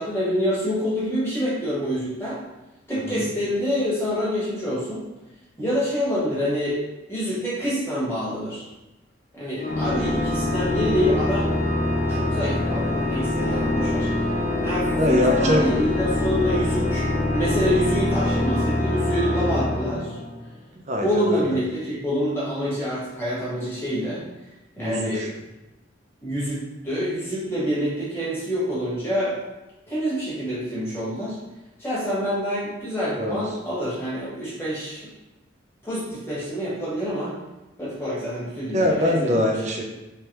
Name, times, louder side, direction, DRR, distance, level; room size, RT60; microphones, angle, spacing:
voice 1, 0.0-2.4 2.9-5.0 5.6-6.8 7.1-8.6 9.3-11.5 12.1-14.1 14.6-17.0 17.3-20.2 21.0-24.2 24.8-25.2 26.2-29.4 29.9-31.4 31.8-35.0 35.8-37.4 37.8-39.3, equal, 15° left, -9 dB, 1.3 m, -26 dB
voice 2, 2.9-3.3 15.0-15.6 20.9-21.6 24.8-25.3 33.2-33.4 38.7-39.8, left 1 dB, 35° right, 0 dB, 0.5 m, -23 dB
Organ, 9.6-20.5, left 1 dB, 40° left, 0.5 m, -24 dB
3.3 x 3.3 x 2.9 m, 1.0 s
head